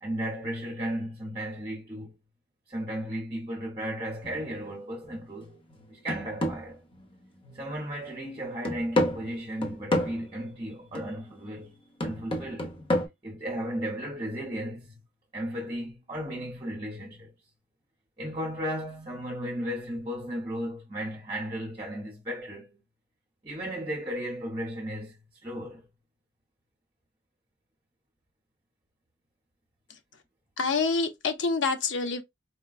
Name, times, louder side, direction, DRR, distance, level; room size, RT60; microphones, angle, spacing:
voice 1, 0.0-2.1 2.7-5.6 5.9-6.8 7.5-11.8 12.0-12.8 13.2-14.9 15.3-17.3 18.2-22.8 23.4-25.9, equal, 25° right, 0.9 m, -35 dB
sound 1, 4.2-4.5 5.0-5.2 5.7-7.7 8.0-8.1 8.6-10.3 11.0-11.2 12.0-13.1, left 1 dB, 25° left, 0.9 m, -30 dB
voice 2, 30.6-32.2, left 4 dB, 70° left, 0.7 m, -27 dB
4.4 x 2.2 x 2.4 m
head